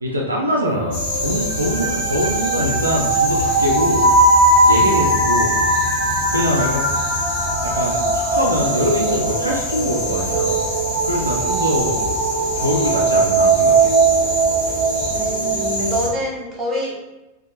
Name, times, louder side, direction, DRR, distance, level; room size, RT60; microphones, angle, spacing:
voice 1, 0.0-4.1 4.7-5.6 6.3-6.8 7.7-10.5 11.0-12.0 12.6-13.9, equal, 80° right, -2 dB, 0.4 m, -23 dB
sound 1, 0.6-15.9, right 2 dB, 55° right, 0.7 m, -20 dB
sound 2, 0.9-16.1, left 1 dB, 50° left, 0.8 m, -26 dB
voice 2, 15.1-17.0, equal, 20° right, -4 dB, 0.8 m, -26 dB
2.8 x 2.1 x 2.5 m, 1.0 s
figure-of-eight pair, 90°, 0 cm